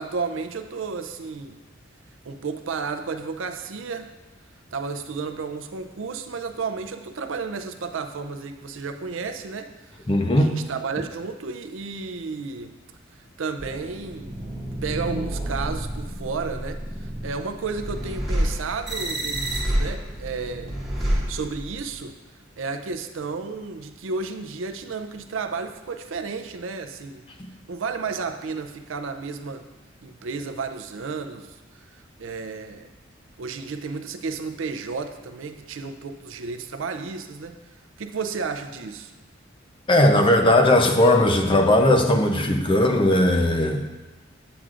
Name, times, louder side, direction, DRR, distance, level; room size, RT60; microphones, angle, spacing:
voice 1, 0.0-1.6 2.2-4.1 4.7-9.7 10.4-12.7 13.4-14.5 14.8-20.8 21.1-22.1 22.6-27.2 27.7-29.6 30.0-31.6 32.2-32.9 33.4-37.6 38.0-39.1, right 4 dB, 70° right, 8 dB, 0.5 m, -32 dB
voice 2, 10.1-10.5 27.4-27.5 39.9-43.9, left 1 dB, 25° left, 4 dB, 0.6 m, -18 dB
sound 1, 13.6-21.9, right 1 dB, ahead, 1.9 m, -29 dB
8.9 x 8.0 x 2.5 m, 1.1 s
head